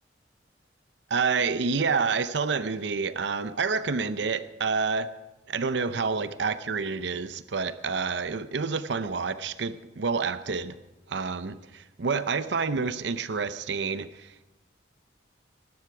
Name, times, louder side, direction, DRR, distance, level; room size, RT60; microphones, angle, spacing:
voice 1, 1.1-5.1 5.5-10.7 11.1-14.5, right 5 dB, 70° right, 12 dB, 0.6 m, -28 dB
19.5 x 12.0 x 4.8 m, 1.0 s
head